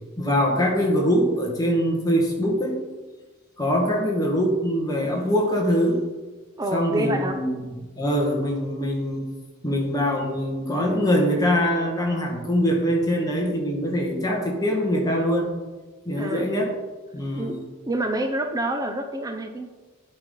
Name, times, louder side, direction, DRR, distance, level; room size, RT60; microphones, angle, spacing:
voice 1, 0.2-2.8 3.6-6.0 6.7-9.3 9.6-15.5 16.0-16.7 17.1-17.6, equal, 15° left, -1 dB, 1.6 m, -23 dB
voice 2, 6.6-7.4 16.2-16.5 17.3-17.6 17.9-19.7, right 1 dB, 15° right, 5 dB, 0.5 m, -27 dB
10.5 x 4.1 x 5.4 m, 1.3 s
head